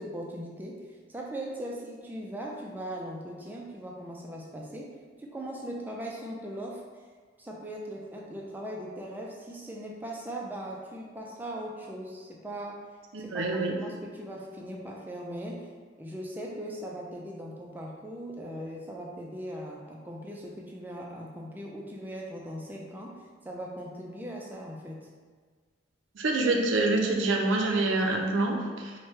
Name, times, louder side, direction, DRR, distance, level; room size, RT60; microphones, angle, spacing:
voice 1, 0.0-6.8 7.4-12.9 13.2-15.7 16.0-25.1, right 1 dB, 10° right, -1 dB, 0.3 m, -39 dB
voice 2, 13.1-13.7 26.2-28.9, right 2 dB, 85° right, 1 dB, 0.4 m, -26 dB
3.1 x 2.1 x 3.0 m, 1.5 s
head